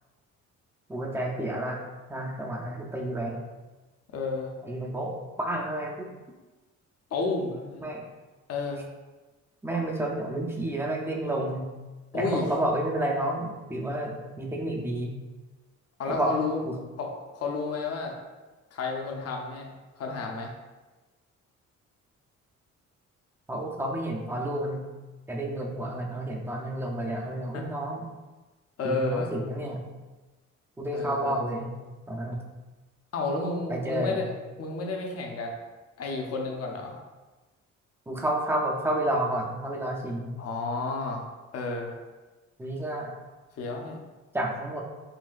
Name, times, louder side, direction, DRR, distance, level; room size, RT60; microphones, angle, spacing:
voice 1, 0.9-1.8 2.1-3.4 4.6-6.1 7.8-8.0 9.6-11.7 12.1-15.2 16.1-16.3 16.6-16.7 23.5-24.9 25.3-28.1 28.8-29.8 30.8-31.8 32.1-32.5 33.7-34.2 38.1-40.3 42.6-43.1 44.3-44.8, right 1 dB, 10° right, 0 dB, 0.5 m, -30 dB
voice 2, 4.1-4.5 7.1-7.9 8.5-8.9 12.1-12.4 16.0-16.6 17.0-18.1 18.7-19.7 20.0-20.5 27.5-27.6 28.8-29.3 30.9-31.4 33.1-34.3 34.6-35.5 36.0-37.0 40.4-41.3 41.5-41.9 43.6-44.0, left 3 dB, 50° left, 1 dB, 0.7 m, -31 dB
3.9 x 2.1 x 2.5 m, 1.2 s
cardioid pair, 80°, 31 cm